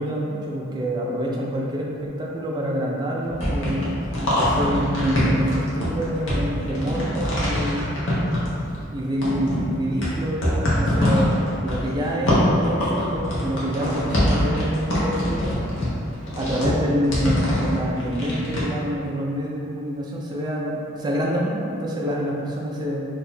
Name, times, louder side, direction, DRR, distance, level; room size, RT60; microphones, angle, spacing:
voice 1, 0.0-3.8 4.3-8.0 8.9-15.6 16.3-23.0, equal, 20° right, -3 dB, 0.3 m, -27 dB
sound 1, 3.2-8.9 9.2-18.6, left 1 dB, 65° left, 0.8 m, -23 dB
2.8 x 2.2 x 4.1 m, 2.5 s
head